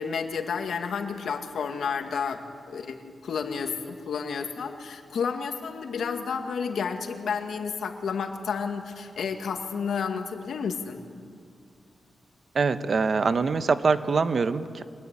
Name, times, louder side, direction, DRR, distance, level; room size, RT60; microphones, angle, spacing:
voice 1, 0.0-11.0, left 6 dB, 80° left, 5 dB, 2.2 m, -31 dB
voice 2, 12.5-14.8, right 4 dB, 50° right, 11 dB, 1.1 m, -24 dB
24.5 x 21.5 x 10.0 m, 2.3 s
wide cardioid pair, 110°, 0 cm